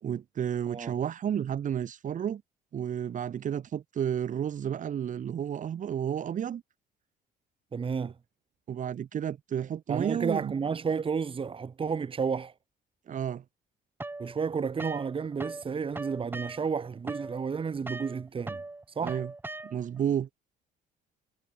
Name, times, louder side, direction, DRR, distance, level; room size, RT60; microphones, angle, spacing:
voice 1, 0.0-2.4 2.7-6.6 8.7-10.5 13.1-13.4 19.0-19.3 19.6-20.3, right 9 dB, 50° right, 4.2 m, -31 dB
voice 2, 7.7-8.1 9.9-12.5 14.2-18.6 18.9-19.2, right 6 dB, 30° right, 3.3 m, -31 dB
sound 1, 14.0-15.6 15.9-20.0, right 2 dB, 10° right, 1.4 m, -40 dB
cardioid pair, 110°, 17 cm